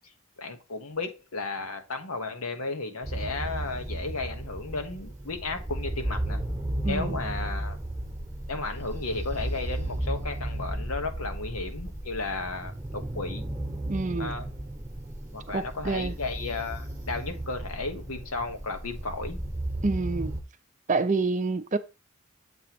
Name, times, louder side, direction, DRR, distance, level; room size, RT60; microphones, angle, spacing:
voice 1, 0.4-6.4 6.8-7.8 8.5-13.4 14.2-14.5 15.3-19.4 21.2-21.3, left 3 dB, 90° left, 1.2 m, -34 dB
sound 1, 3.0-20.4, right 1 dB, 15° right, 1.0 m, -34 dB
voice 2, 6.8-7.2 13.9-14.3 15.5-16.1 19.8-20.4 20.9-21.8, right 3 dB, 35° right, 0.5 m, -27 dB
7.6 x 3.0 x 5.9 m
head